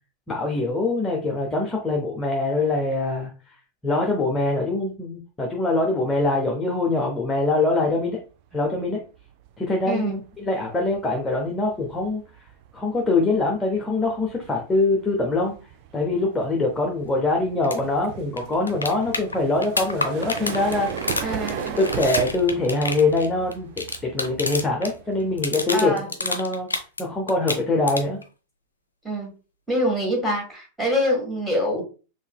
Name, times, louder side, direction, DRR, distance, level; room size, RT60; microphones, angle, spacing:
voice 1, 0.3-3.5 3.8-8.2 8.5-9.0 9.6-12.2 12.7-15.5 15.9-21.1 21.8-23.7 24.0-26.7 27.0-28.2, left 2 dB, 15° left, -1 dB, 0.7 m, -23 dB
sound 1, 8.5-8.8 9.1-25.9, right 8 dB, 45° right, 0.4 m, -38 dB
voice 2, 9.9-10.2 21.2-21.8 25.7-26.1 29.0-29.3 29.7-31.8, equal, ahead, -1 dB, 1.5 m, -25 dB
sound 2, 17.6-17.8 18.0-18.1 18.4-24.9 25.2-27.0 27.3-28.2 30.3-30.4, left 3 dB, 75° left, 0.4 m, -29 dB
4.0 x 2.9 x 2.2 m, 0.33 s
figure-of-eight pair, 90°, 0 cm